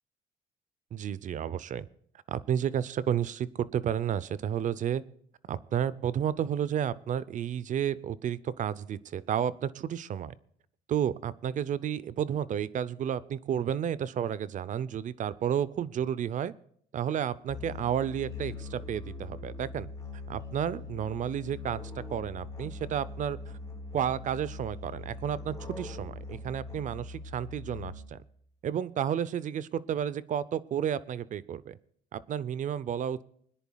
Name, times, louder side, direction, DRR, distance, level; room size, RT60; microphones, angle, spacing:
voice 1, 0.9-1.9 2.3-5.0 5.5-10.3 10.9-16.5 16.9-19.9 20.3-21.8 22.1-23.4 23.9-28.2 28.6-31.8 32.1-33.2, right 9 dB, 50° right, 18 dB, 0.6 m, -31 dB
Musical instrument, 17.5-28.3, left 3 dB, 20° left, 5.0 m, -42 dB
25.5 x 10.5 x 2.3 m, 0.64 s
cardioid pair, 110°, 17 cm